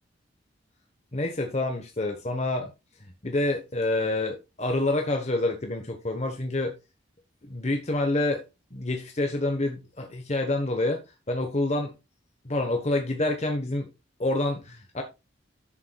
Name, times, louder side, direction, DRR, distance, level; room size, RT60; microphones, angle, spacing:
voice 1, 1.1-2.7 3.2-6.7 7.4-8.4 8.7-11.0 11.3-11.9 12.4-13.8 14.2-15.0, left 2 dB, 35° left, 1.1 m, -27 dB
11.5 x 7.2 x 2.3 m
head